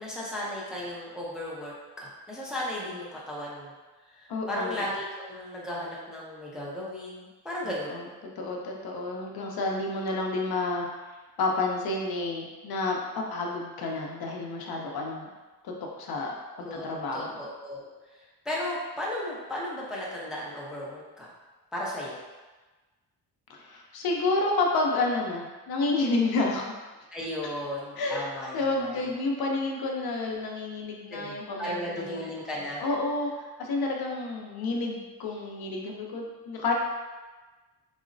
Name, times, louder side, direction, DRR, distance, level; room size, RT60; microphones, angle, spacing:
voice 1, 0.0-1.7 2.0-3.7 4.0-8.0 16.6-16.8 17.1-21.3 21.7-22.2 27.1-29.0 31.1-32.8, left 1 dB, ahead, -6 dB, 0.5 m, -35 dB
voice 2, 4.3-4.8 7.9-8.0 8.4-10.9 11.4-15.3 15.6-17.3 23.5-26.7 28.0-28.2 28.5-32.3 32.8-36.7, left 2 dB, 65° left, 0 dB, 0.5 m, -30 dB
3.7 x 2.0 x 2.5 m, 1.2 s
cardioid pair, 130°, 41 cm